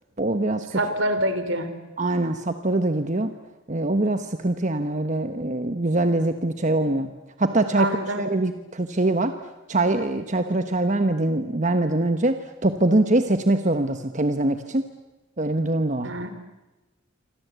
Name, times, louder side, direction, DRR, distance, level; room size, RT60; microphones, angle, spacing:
voice 1, 0.2-0.8 2.0-3.3 3.7-7.1 7.4-9.3 9.7-14.8 15.4-16.2, right 2 dB, 35° right, 8 dB, 1.2 m, -23 dB
voice 2, 0.7-1.7 7.8-8.2 16.0-16.3, right 1 dB, 70° right, 10 dB, 3.5 m, -25 dB
27.5 x 26.0 x 8.2 m, 1.1 s
head